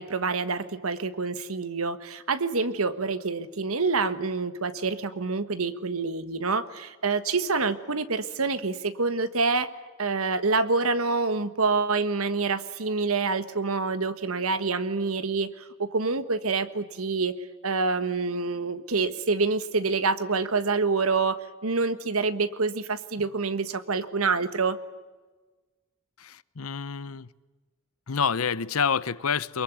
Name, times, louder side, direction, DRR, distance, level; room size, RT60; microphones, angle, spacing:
voice 1, 0.0-9.7 10.0-17.4 17.6-24.8, right 4 dB, 80° right, 12 dB, 1.5 m, -27 dB
voice 2, 26.2-27.3 28.1-29.6, left 6 dB, 80° left, 18 dB, 0.8 m, -28 dB
24.0 x 22.0 x 9.4 m, 1.3 s
head